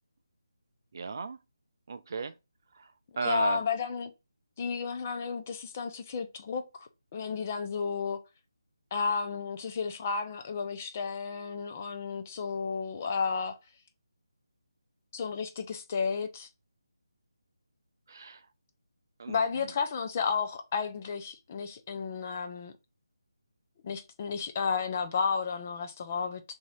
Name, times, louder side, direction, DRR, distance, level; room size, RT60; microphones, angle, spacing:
voice 1, 0.9-1.4 1.9-2.3 2.7-3.6 18.1-18.4 19.2-19.7, right 4 dB, 45° right, 0.4 m, -36 dB
voice 2, 3.2-4.1 4.6-8.2 8.9-13.6 15.1-16.5 19.3-22.7 23.8-26.4, left 5 dB, 25° left, 0.4 m, -32 dB
3.6 x 2.7 x 3.3 m
figure-of-eight pair, 170°, 3 cm